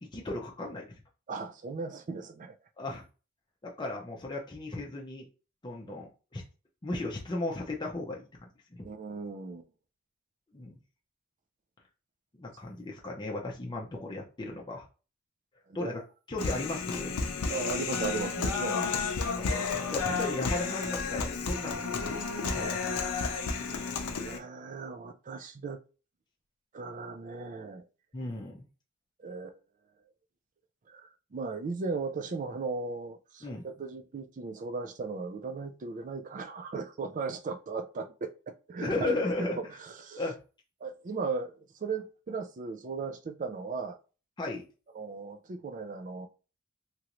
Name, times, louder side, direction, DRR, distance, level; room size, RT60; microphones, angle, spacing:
voice 1, 0.0-0.8 2.8-3.0 3.6-5.2 5.6-6.4 6.8-8.8 10.5-10.8 12.4-14.9 15.7-16.0 16.3-17.1 19.3-19.5 19.9-22.2 22.5-23.0 28.1-28.7 33.4-33.7 38.8-39.6 40.2-40.4 44.4-44.6, left 2 dB, 20° left, 0.5 m, -35 dB
voice 2, 1.3-2.6 5.9-6.0 8.8-9.7 15.7-16.0 17.5-19.2 24.2-25.8 26.7-27.8 29.2-29.6 30.9-40.2 40.8-44.0 44.9-46.3, right 4 dB, 35° right, 0.4 m, -37 dB
Human voice, 16.4-24.4, left 4 dB, 80° left, 0.6 m, -32 dB
3.0 x 2.5 x 2.9 m
head